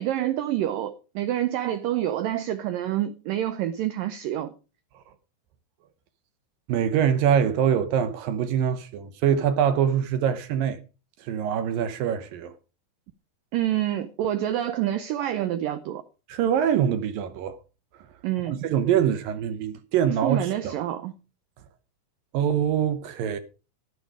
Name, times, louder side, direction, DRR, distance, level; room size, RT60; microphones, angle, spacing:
voice 1, 0.0-4.5 13.5-16.0 18.2-18.6 20.2-21.1, right 12 dB, 90° right, 1.9 m, -27 dB
voice 2, 6.7-10.8 11.2-12.5 16.3-17.6 18.5-20.7 22.3-23.4, right 8 dB, 70° right, 2.3 m, -24 dB
11.5 x 10.5 x 4.9 m
omnidirectional pair, 4.9 m